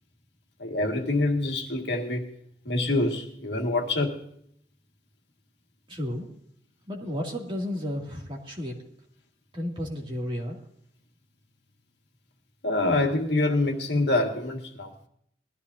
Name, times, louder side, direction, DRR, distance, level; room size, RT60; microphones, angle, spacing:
voice 1, 0.6-2.3 2.7-4.2 12.6-14.9, left 2 dB, 75° left, 2 dB, 1.8 m, -26 dB
voice 2, 5.9-6.3 6.9-8.8 9.5-10.6, left 1 dB, 30° right, -2 dB, 2.4 m, -32 dB
21.0 x 13.5 x 2.7 m, 0.68 s
head